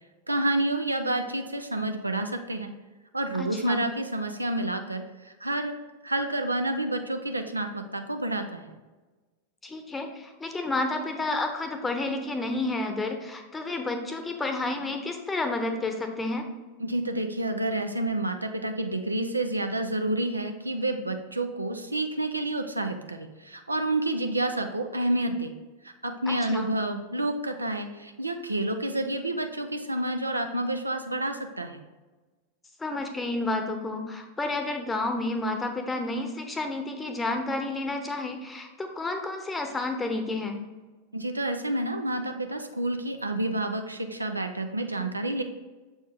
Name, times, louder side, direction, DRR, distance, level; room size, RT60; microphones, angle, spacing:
voice 1, 0.3-2.7 3.1-5.8 6.0-8.8 16.8-25.5 26.0-31.8 41.1-45.4, right 1 dB, 85° right, 5 dB, 0.5 m, -29 dB
voice 2, 3.4-3.8 9.6-16.4 26.3-26.7 32.8-40.6, left 2 dB, 10° left, 5 dB, 0.8 m, -30 dB
7.1 x 4.4 x 3.4 m, 1.2 s
figure-of-eight pair, 90°, 0 cm